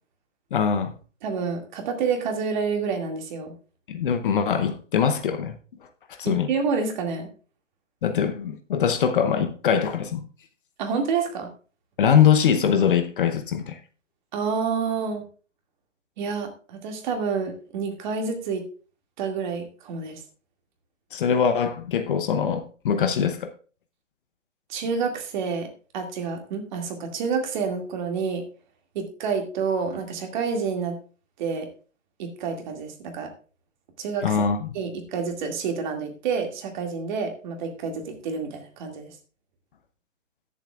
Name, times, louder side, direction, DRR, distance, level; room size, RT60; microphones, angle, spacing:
voice 1, 0.5-0.9 3.9-5.5 6.1-6.5 8.0-10.2 12.0-13.8 21.1-23.5 34.2-34.7, left 7 dB, 45° left, 0.8 m, -22 dB
voice 2, 1.2-3.5 6.2-7.3 10.8-11.5 14.3-15.2 16.2-18.7 19.2-20.2 24.7-25.7 25.9-28.4 28.9-31.0 31.4-31.7 32.2-33.3 34.0-34.4 34.7-39.1, right 5 dB, 35° right, 2.3 m, -28 dB
20.5 x 7.3 x 2.4 m
figure-of-eight pair, 135°, 38 cm